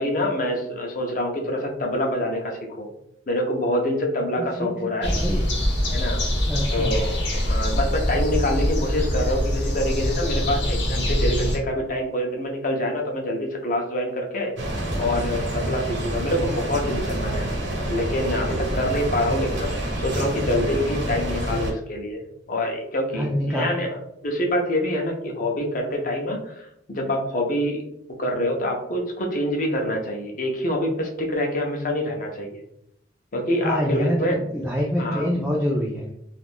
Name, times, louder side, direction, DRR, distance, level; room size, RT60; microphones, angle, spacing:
voice 1, 0.0-2.9 3.3-5.1 5.9-6.2 6.7-14.5 15.0-17.5 17.9-19.7 20.0-22.2 22.5-27.8 28.2-32.6 33.3-34.5 35.0-35.3, left 1 dB, 45° left, 1 dB, 0.6 m, -26 dB
voice 2, 4.6-5.5 6.4-7.0 23.1-23.7 33.6-36.1, equal, 5° right, -4 dB, 0.3 m, -26 dB
sound 1, 5.0-11.6, equal, 70° left, 0.9 m, -24 dB
sound 2, 14.6-21.7, right 1 dB, 70° right, 0.9 m, -27 dB
2.5 x 2.4 x 3.4 m, 0.77 s
head